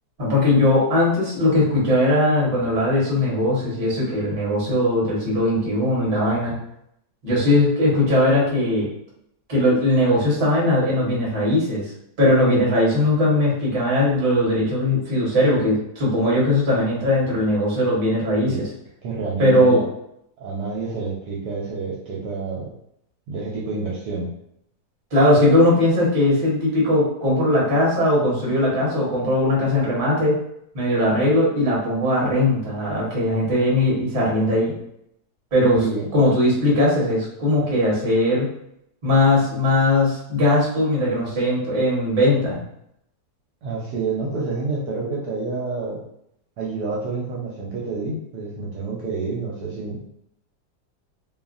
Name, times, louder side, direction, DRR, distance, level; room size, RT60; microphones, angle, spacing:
voice 1, 0.2-6.5 7.2-8.9 9.5-11.8 12.2-18.6 19.4-19.8 25.1-30.4 30.7-34.7 35.5-35.8 36.1-38.5 39.0-42.6, left 1 dB, 35° right, -5 dB, 1.0 m, -19 dB
voice 2, 19.0-19.8 20.4-22.7 23.3-24.3 35.7-36.1 43.6-46.0 46.6-50.1, right 4 dB, 70° right, -4 dB, 1.1 m, -28 dB
2.9 x 2.4 x 2.4 m, 0.74 s
omnidirectional pair, 1.9 m